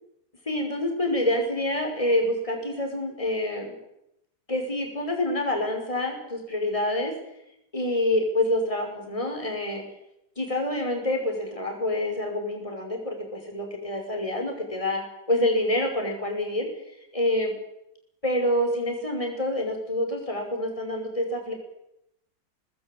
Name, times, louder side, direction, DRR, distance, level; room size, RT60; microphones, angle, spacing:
voice 1, 0.5-3.7 4.5-7.1 7.7-9.8 10.4-15.0 15.3-16.7 17.1-17.5 18.2-21.5, left 1 dB, 15° left, 3 dB, 5.7 m, -27 dB
22.5 x 20.0 x 8.7 m, 0.81 s
omnidirectional pair, 2.0 m